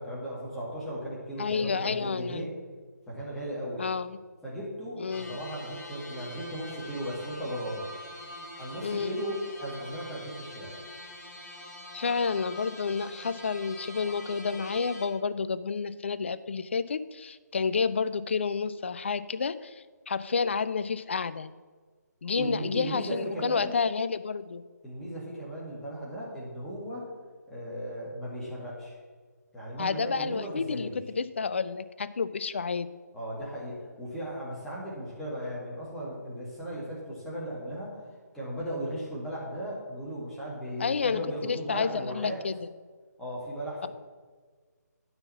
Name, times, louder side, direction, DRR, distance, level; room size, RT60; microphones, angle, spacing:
voice 1, 0.0-2.5 3.1-3.8 4.4-7.8 8.6-10.8 22.4-23.8 24.8-27.0 27.5-28.9 29.5-31.0 33.1-38.0 38.3-42.4 43.2-43.9, equal, 5° left, -8 dB, 2.1 m, -36 dB
voice 2, 1.4-2.5 3.8-4.2 5.0-5.4 8.8-9.1 11.9-21.5 22.2-24.6 29.8-32.9 40.8-42.6, left 5 dB, 40° left, 15 dB, 0.4 m, -30 dB
sound 1, 5.1-15.1, left 1 dB, 60° left, 3.3 m, -44 dB
9.7 x 5.7 x 7.1 m, 1.5 s
figure-of-eight pair, 150°, 10 cm